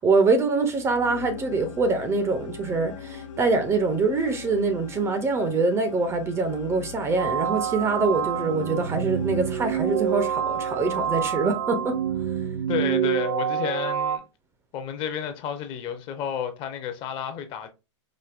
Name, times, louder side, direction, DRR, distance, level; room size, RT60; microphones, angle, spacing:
voice 1, 0.0-12.0, right 3 dB, 15° right, 0.5 m, -24 dB
sound 1, 0.7-12.0, left 7 dB, 80° left, 0.7 m, -42 dB
sound 2, 7.2-14.2, right 9 dB, 85° right, 0.6 m, -27 dB
voice 2, 12.7-14.2 14.7-17.7, left 8 dB, 35° left, 0.6 m, -31 dB
5.0 x 2.5 x 2.4 m
hypercardioid pair, 130°, 16 cm